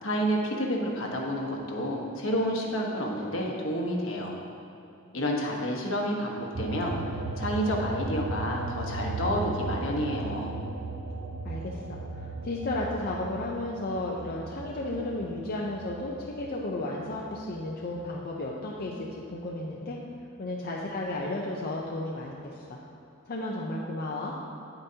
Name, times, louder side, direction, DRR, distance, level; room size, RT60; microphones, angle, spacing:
voice 1, 0.0-4.4 5.1-6.9 7.4-10.6, equal, 70° left, -1 dB, 1.2 m, -29 dB
sound 1, 6.5-17.4 17.8-19.3, right 2 dB, 70° right, 0.7 m, -36 dB
voice 2, 11.4-20.0 20.4-22.8 23.3-24.3, left 2 dB, 45° left, -3 dB, 0.6 m, -33 dB
9.1 x 8.8 x 2.8 m, 2.9 s
head